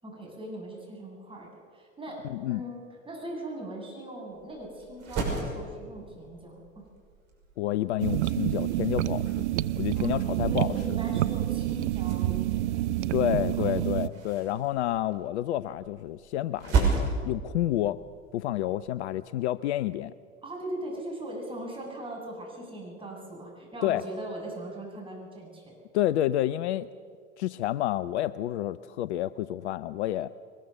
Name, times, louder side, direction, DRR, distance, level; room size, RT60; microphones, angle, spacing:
voice 1, 0.0-6.9 9.9-12.7 13.6-13.7 20.4-25.7, right 1 dB, 15° right, -2 dB, 7.5 m, -40 dB
voice 2, 2.3-2.6 7.6-9.4 9.8-10.7 13.1-18.0 18.3-20.1 23.8-24.0 25.9-26.9 27.4-30.3, left 13 dB, 55° left, 17 dB, 0.6 m, -29 dB
sound 1, 4.3-19.1, right 4 dB, 40° right, 6.1 m, -36 dB
sound 2, 8.0-14.1, right 14 dB, 55° right, 0.7 m, -28 dB
22.0 x 20.5 x 6.8 m, 2.1 s
figure-of-eight pair, 75°, 40 cm